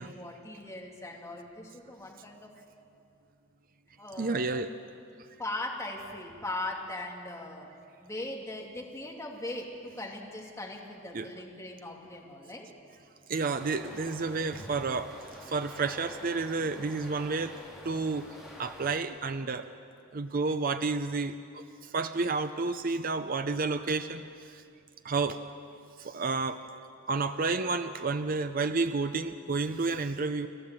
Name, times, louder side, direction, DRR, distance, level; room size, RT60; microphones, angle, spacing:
voice 1, 0.0-2.5 4.0-4.6 5.4-7.7 8.0-12.7 14.5-14.8, left 1 dB, 15° left, -1 dB, 2.5 m, -39 dB
voice 2, 4.2-4.7 11.1-11.3 13.3-17.5 17.8-18.2 18.6-19.7 20.1-24.6 25.0-25.4 26.0-26.6 27.1-30.5, right 4 dB, 45° right, 9 dB, 0.6 m, -31 dB
sound 1, 13.5-19.0, equal, ahead, 3.8 m, -48 dB
29.5 x 12.5 x 7.6 m, 2.5 s
head